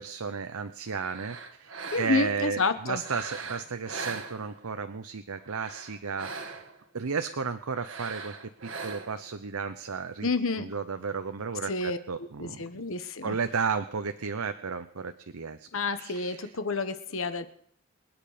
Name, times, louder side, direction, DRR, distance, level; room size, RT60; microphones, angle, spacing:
voice 1, 0.0-6.6 6.9-8.4 8.6-10.3 10.6-12.6 13.2-15.7 16.0-16.5, right 5 dB, 75° right, 9 dB, 0.7 m, -33 dB
sound 1, 0.9-2.4 2.9-4.8 5.3-6.8 7.7-9.3, right 4 dB, 60° right, 1.5 m, -41 dB
voice 2, 1.9-3.0 10.2-10.7 11.7-13.4 15.7-17.5, left 3 dB, 65° left, 10 dB, 1.1 m, -29 dB
25.5 x 9.0 x 5.1 m, 0.65 s
head